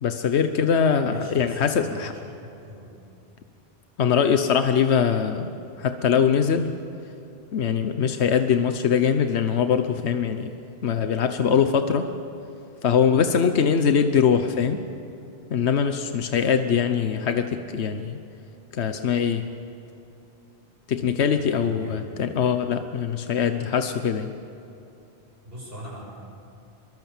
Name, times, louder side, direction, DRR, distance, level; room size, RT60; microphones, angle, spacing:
voice 1, 0.0-2.1 4.0-6.8 7.5-10.5 10.8-12.1 12.8-14.8 15.5-18.2 18.7-19.5 20.9-24.3, left 7 dB, 85° left, 8 dB, 1.2 m, -22 dB
voice 2, 1.0-3.0 14.5-14.7 21.3-22.0 25.4-26.0, right 1 dB, 60° right, -3 dB, 7.4 m, -41 dB
24.0 x 23.0 x 7.3 m, 2.7 s
omnidirectional pair, 1.1 m